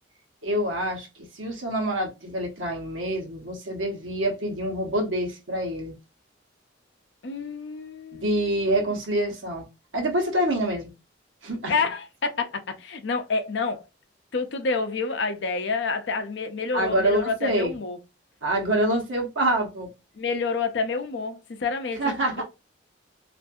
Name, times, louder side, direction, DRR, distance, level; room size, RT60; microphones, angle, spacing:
voice 1, 0.4-1.1 1.3-6.0 8.1-9.7 9.9-10.9 11.4-11.7 16.7-17.8 18.4-19.9 22.0-22.4, right 1 dB, 85° right, 1.0 m, -26 dB
voice 2, 7.2-8.9 11.7-13.8 14.3-18.0 20.2-22.1, left 4 dB, 65° left, 0.5 m, -28 dB
2.6 x 2.5 x 2.3 m
head